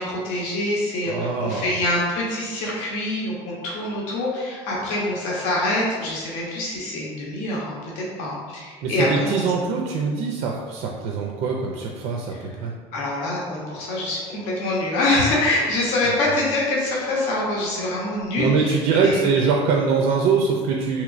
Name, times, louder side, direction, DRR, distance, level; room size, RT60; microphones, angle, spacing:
voice 1, 0.0-9.4 12.9-18.8 19.0-19.2, left 2 dB, 75° left, -4 dB, 0.7 m, -25 dB
voice 2, 1.1-1.8 8.8-12.3 12.6-12.7 18.4-21.0, right 5 dB, 70° right, 0 dB, 0.4 m, -23 dB
3.1 x 2.8 x 2.5 m, 1.5 s
cardioid pair, 130°, 13 cm